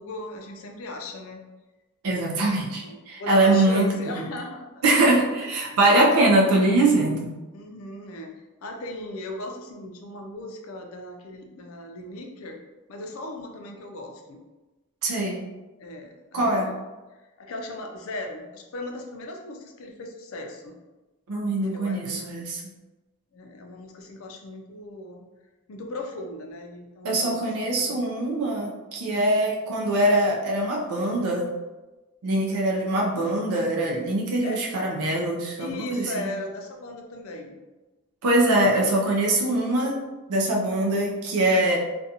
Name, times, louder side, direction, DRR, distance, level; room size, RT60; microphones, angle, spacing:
voice 1, 0.0-1.4 2.8-4.9 5.4-6.2 7.5-8.3 8.6-12.6 12.9-14.4 15.8-16.7 17.4-20.8 21.6-22.5 23.3-25.2 25.7-27.4 27.8-28.0 34.4-34.6 35.6-37.6, left 1 dB, 70° left, 3 dB, 0.4 m, -37 dB
voice 2, 2.0-4.3 4.8-7.3 15.0-15.5 16.3-16.7 21.3-22.6 27.0-31.6 32.2-36.2 38.2-40.0 40.3-41.8, right 1 dB, 80° right, -2 dB, 0.4 m, -23 dB
2.5 x 2.2 x 2.7 m, 1.1 s
head